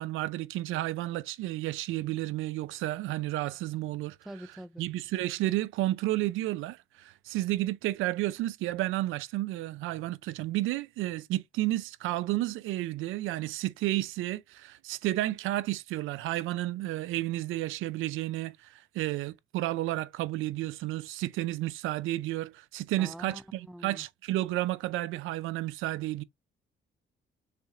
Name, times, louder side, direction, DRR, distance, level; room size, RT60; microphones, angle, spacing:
voice 1, 0.0-4.2 4.8-26.2, right 16 dB, 90° right, 0.4 m, -32 dB
voice 2, 4.3-4.8 23.0-24.0, right 1 dB, ahead, 0.3 m, -45 dB
6.6 x 2.4 x 2.8 m
cardioid pair, 90°, 20 cm